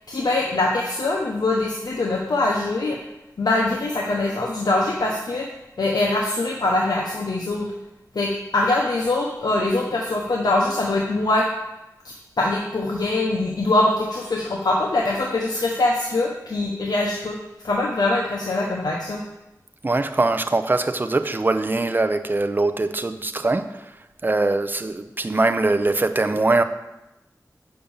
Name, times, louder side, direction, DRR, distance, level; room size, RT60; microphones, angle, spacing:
voice 1, 0.1-3.0 3.4-5.5 5.8-7.7 8.1-11.4 12.4-17.4 17.6-19.2, left 2 dB, 75° left, -1 dB, 0.9 m, -23 dB
voice 2, 19.8-23.8 24.2-26.6, right 2 dB, 30° right, 9 dB, 0.5 m, -22 dB
6.7 x 5.2 x 7.1 m, 0.96 s
wide cardioid pair, 80°, 7 cm